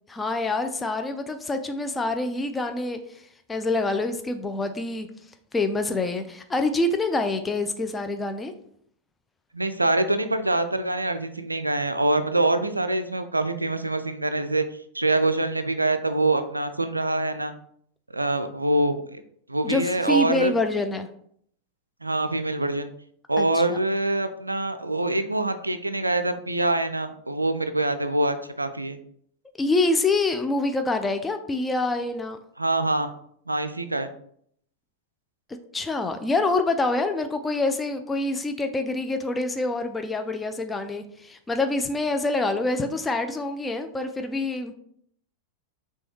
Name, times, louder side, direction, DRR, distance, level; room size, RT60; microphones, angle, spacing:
voice 1, 0.1-3.0 3.5-5.1 5.5-8.5 19.6-21.1 23.4-23.8 29.6-32.4 35.7-44.7, left 2 dB, 15° left, 7 dB, 0.4 m, -26 dB
voice 2, 9.5-14.6 14.9-17.5 18.1-19.2 19.5-20.5 22.0-22.9 23.3-29.0 32.6-33.1 33.5-34.1, right 2 dB, 85° right, 9 dB, 0.3 m, -25 dB
5.9 x 2.3 x 3.1 m, 0.66 s
figure-of-eight pair, 90°, 0 cm